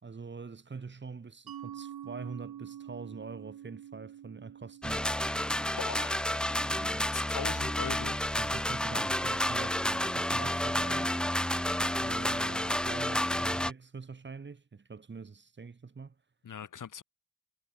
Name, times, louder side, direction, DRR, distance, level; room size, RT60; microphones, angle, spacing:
voice 1, 0.0-5.2 6.6-7.1 8.4-11.2 12.0-16.1, right 4 dB, 30° right, 2.6 m, -44 dB
Mallet percussion, 1.5-6.8, right 10 dB, 65° right, 5.2 m, -47 dB
sound 1, 4.8-13.7, left 1 dB, ahead, 0.5 m, -30 dB
voice 2, 5.7-6.1 7.1-8.2 16.4-17.0, left 8 dB, 50° left, 6.2 m, -39 dB
cardioid pair, 90°, 39 cm